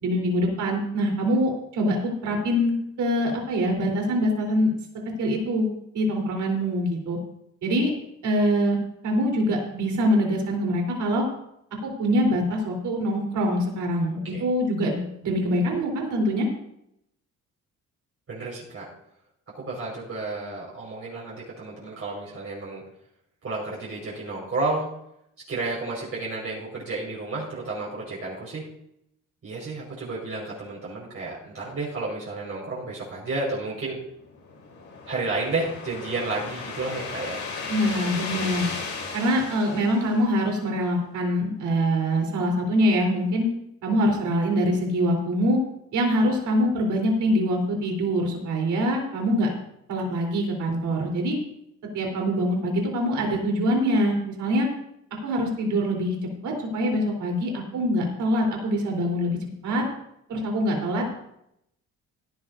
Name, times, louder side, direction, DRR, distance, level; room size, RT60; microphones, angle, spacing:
voice 1, 0.0-4.7 5.2-5.7 5.9-7.2 7.6-7.9 8.2-11.3 11.8-16.5 37.7-38.7 39.1-43.5 43.8-45.6 45.9-49.5 49.9-51.4 51.9-54.7 55.2-56.1 56.4-59.8 60.3-61.1, equal, 75° right, 0 dB, 3.9 m, -24 dB
voice 2, 18.3-18.9 19.5-22.8 23.4-24.9 25.5-28.7 29.4-34.0 35.1-37.4, right 3 dB, 50° right, -5 dB, 5.0 m, -31 dB
sound 1, 34.2-40.7, left 4 dB, 75° left, 3.8 m, -35 dB
17.0 x 11.5 x 2.7 m, 0.77 s
cardioid pair, 90°, 30 cm